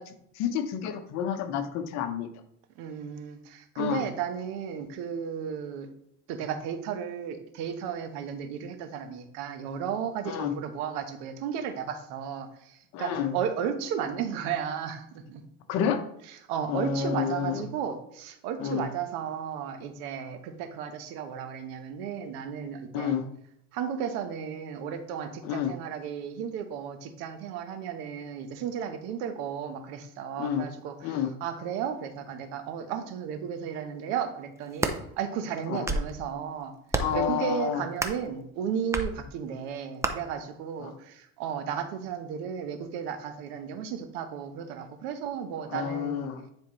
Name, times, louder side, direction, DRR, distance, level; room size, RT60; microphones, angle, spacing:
voice 1, 0.0-2.3 3.8-4.0 10.2-10.5 12.9-13.3 15.7-16.0 16.7-17.6 18.6-18.9 22.9-23.2 25.4-25.7 30.4-30.6 31.0-31.3 35.7-35.9 37.0-37.8 40.8-40.9 45.7-46.4, left 8 dB, 55° left, 8 dB, 1.0 m, -29 dB
voice 2, 2.8-5.9 6.3-15.4 16.5-23.1 23.7-36.7 37.1-46.3, right 8 dB, 75° right, 8 dB, 1.1 m, -34 dB
sound 1, 34.6-35.0 35.6-36.2 36.9-37.2 38.0-38.3 38.9-39.1 40.0-40.1, right 2 dB, 10° right, 0.5 m, -29 dB
9.7 x 4.5 x 3.1 m, 0.72 s
supercardioid pair, 130°, 32 cm